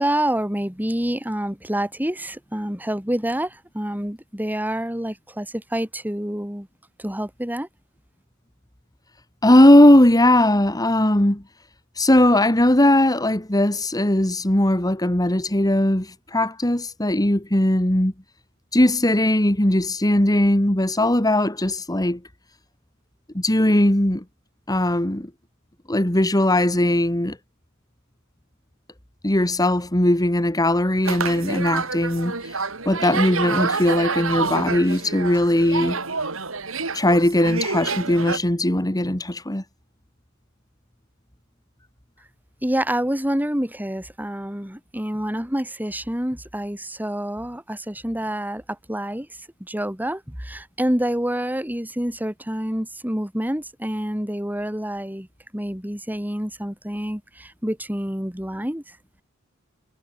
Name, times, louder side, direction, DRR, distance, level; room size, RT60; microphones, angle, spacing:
voice 1, 0.0-6.7 7.0-7.7 42.6-49.3 49.6-55.3 55.5-58.8, right 1 dB, 10° right, 3.3 m, -27 dB
voice 2, 9.4-11.4 12.0-18.1 18.7-22.2 23.3-24.2 24.7-25.3 25.9-27.4 29.2-36.0 36.9-39.6, left 1 dB, 20° left, 2.1 m, -19 dB
sound 1, 31.0-38.4, right 4 dB, 85° right, 4.0 m, -28 dB
head